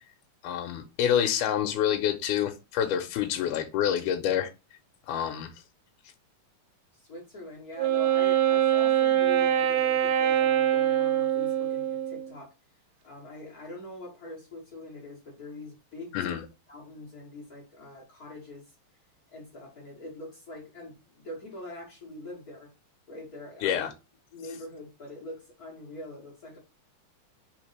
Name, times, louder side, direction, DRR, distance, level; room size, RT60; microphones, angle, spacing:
voice 1, 0.4-4.5 5.1-5.5 16.1-16.4 23.6-23.9, left 9 dB, 80° left, 2.0 m, -27 dB
voice 2, 6.9-12.5 13.0-16.4 16.7-18.6 19.3-20.9 21.2-22.7 23.1-23.9 24.3-26.6, left 2 dB, 65° left, 0.9 m, -43 dB
Wind instrument woodwind instrument, 7.8-12.3, right 11 dB, 80° right, 1.8 m, -24 dB
4.5 x 3.6 x 3.2 m
omnidirectional pair, 3.8 m